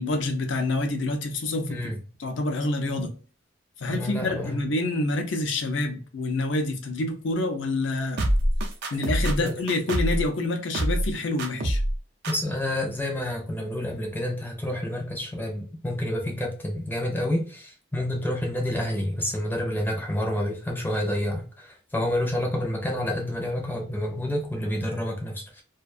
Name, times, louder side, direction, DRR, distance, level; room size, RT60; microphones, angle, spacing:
voice 1, 0.0-1.8 2.2-3.1 3.8-8.2 8.9-11.8, left 2 dB, 65° left, 0.5 m, -27 dB
voice 2, 3.9-4.7 9.4-9.6 12.3-25.6, left 1 dB, 10° left, 0.6 m, -29 dB
sound 1, 8.2-10.3 10.7-11.1 11.4-12.0 12.2-12.3, right 1 dB, 55° right, 0.5 m, -25 dB
2.4 x 2.3 x 2.4 m
head